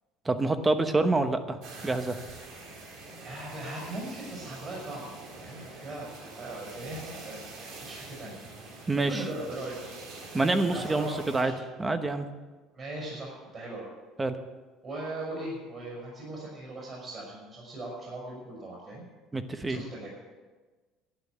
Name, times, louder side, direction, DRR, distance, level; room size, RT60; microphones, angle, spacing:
voice 1, 0.2-1.6 1.8-2.2 8.9-9.2 10.3-11.5 11.8-12.3 14.2-14.4 19.3-19.8, right 2 dB, 15° right, 9 dB, 1.0 m, -26 dB
sound 1, 1.6-11.4, right 3 dB, 70° right, 3.7 m, -45 dB
voice 2, 3.2-5.1 5.4-8.4 9.1-9.9 10.7-11.6 12.7-13.8 14.8-19.0 19.6-20.1, right 1 dB, 35° right, -4 dB, 5.1 m, -39 dB
11.5 x 9.1 x 8.1 m, 1.3 s
cardioid pair, 125°, 0 cm